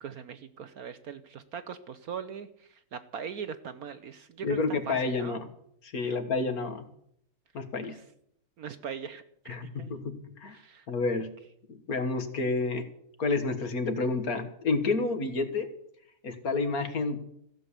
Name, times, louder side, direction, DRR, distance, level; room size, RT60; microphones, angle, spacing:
voice 1, 0.0-5.4 6.0-6.2 7.9-8.0 8.6-10.0 10.5-10.9, right 7 dB, 65° right, 12 dB, 0.9 m, -41 dB
voice 2, 4.4-5.5 5.8-6.9 7.5-8.0 9.5-10.6 10.9-11.3 11.7-12.9 13.2-15.7 16.2-17.2, left 3 dB, 45° left, 9 dB, 1.8 m, -29 dB
15.5 x 8.0 x 9.9 m, 0.71 s
omnidirectional pair, 2.4 m